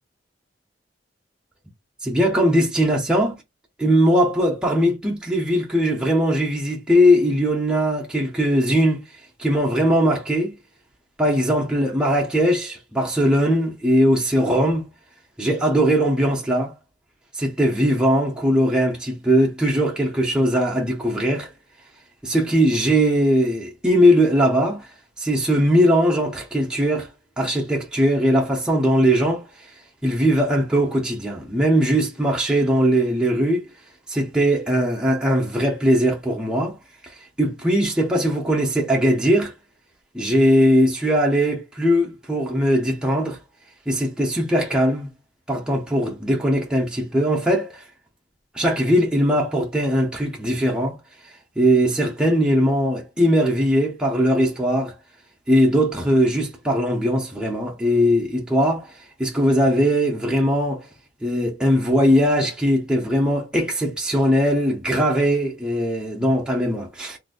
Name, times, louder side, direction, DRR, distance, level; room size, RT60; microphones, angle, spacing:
voice 1, 2.0-3.3 3.8-9.0 9.4-10.5 11.2-14.9 15.4-16.7 17.3-21.5 22.2-24.9 25.2-27.1 27.4-29.7 30.0-33.7 34.1-36.8 37.0-39.5 40.1-43.4 43.9-45.1 45.5-47.8 48.5-51.0 51.6-54.9 55.5-60.9 61.2-67.2, equal, 5° right, 0.6 m, -20 dB
3.8 x 2.6 x 2.2 m
head